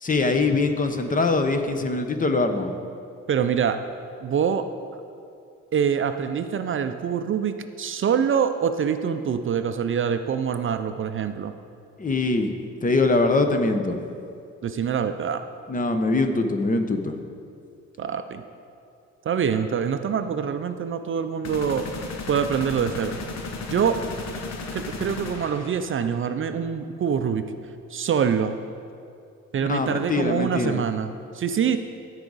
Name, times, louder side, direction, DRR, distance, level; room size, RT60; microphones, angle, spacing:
voice 1, 0.0-2.7 12.0-12.5 12.8-14.0 15.7-17.2 29.7-30.8, left 3 dB, 25° left, 6 dB, 0.8 m, -23 dB
voice 2, 3.3-3.8 4.2-4.6 5.7-11.5 14.6-15.4 18.0-18.4 19.2-21.8 22.3-23.2 23.7-24.0 24.7-27.4 27.9-28.5 29.5-31.8, right 7 dB, 45° right, 9 dB, 0.5 m, -25 dB
sound 1, 21.4-26.2, left 3 dB, 60° left, 1.0 m, -35 dB
14.5 x 4.9 x 4.0 m, 2.4 s
cardioid pair, 90°, 30 cm